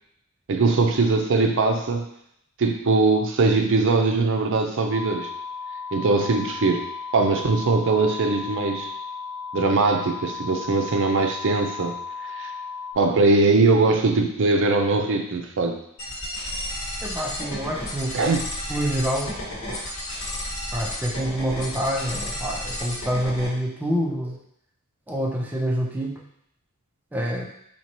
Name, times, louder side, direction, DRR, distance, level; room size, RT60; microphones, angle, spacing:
voice 1, 0.5-2.1 2.6-5.3 5.9-6.9 7.1-8.9 9.5-11.9 12.2-12.5 13.0-15.8 18.1-18.4, right 3 dB, 60° right, 4 dB, 0.5 m, -21 dB
sound 1, 4.9-12.9, left 5 dB, 45° left, 0.6 m, -35 dB
sound 2, 16.0-23.5, left 1 dB, 70° left, 1.6 m, -32 dB
voice 2, 17.0-18.3 18.7-19.4 20.7-24.4 25.1-26.2 27.1-27.5, equal, 10° right, -1 dB, 0.5 m, -27 dB
4.3 x 2.9 x 3.0 m, 0.74 s
head